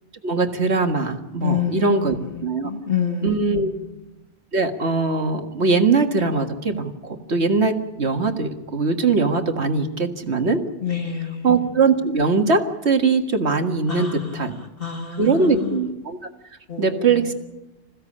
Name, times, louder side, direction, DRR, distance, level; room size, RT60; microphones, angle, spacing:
voice 1, 0.2-2.2 2.4-2.7 3.2-3.7 4.5-10.6 11.4-14.6 15.2-16.2 16.8-17.3, right 4 dB, 75° right, 5 dB, 2.1 m, -21 dB
voice 2, 1.4-3.9 10.8-11.6 13.9-15.9 16.7-17.3, left 7 dB, 55° left, 3 dB, 1.9 m, -28 dB
27.0 x 16.0 x 8.6 m, 1.0 s
omnidirectional pair, 1.1 m